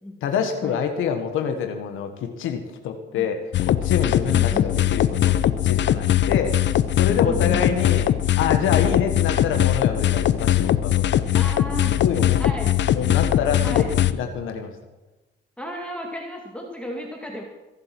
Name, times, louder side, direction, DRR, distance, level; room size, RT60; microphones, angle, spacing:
voice 1, 0.2-6.6 7.0-8.1 8.4-11.3 11.8-12.4 12.9-13.9 14.1-14.7, left 7 dB, 90° left, 6 dB, 1.6 m, -27 dB
sound 1, 3.5-14.1, left 11 dB, 65° left, 0.8 m, -20 dB
voice 2, 4.3-4.7 7.2-7.9 11.3-12.0 12.4-12.7 13.6-13.9 15.6-17.4, left 1 dB, 5° left, 0 dB, 2.2 m, -33 dB
23.0 x 7.8 x 6.1 m, 1.1 s
cardioid pair, 90°, 20 cm